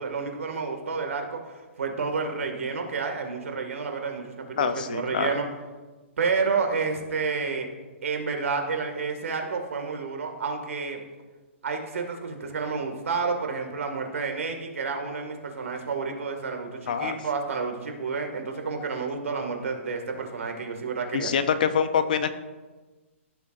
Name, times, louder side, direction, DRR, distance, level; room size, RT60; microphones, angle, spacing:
voice 1, 0.0-5.5 6.2-7.7 8.0-11.0 11.6-21.3, right 4 dB, 80° right, 4 dB, 2.0 m, -30 dB
voice 2, 4.6-5.3 16.9-17.1 21.1-22.3, left 7 dB, 40° left, 11 dB, 0.6 m, -25 dB
15.5 x 7.1 x 2.5 m, 1.3 s
hypercardioid pair, 180°, 7 cm